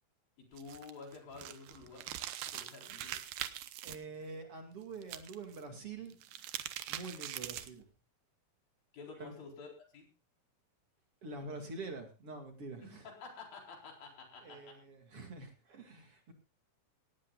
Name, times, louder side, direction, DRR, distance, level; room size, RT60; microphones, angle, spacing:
voice 1, 0.4-2.0 2.5-3.2 8.9-10.1 12.8-14.8, left 4 dB, 85° left, 1 dB, 6.1 m, -50 dB
sound 1, 0.5-4.0 5.0-5.6 6.1-7.8, right 12 dB, 90° right, 2.8 m, -42 dB
voice 2, 3.8-6.2 6.9-7.9 9.2-9.3 11.2-13.0 14.4-16.3, right 3 dB, 45° right, 4 dB, 3.1 m, -46 dB
18.0 x 18.0 x 2.5 m, 0.31 s
omnidirectional pair, 4.0 m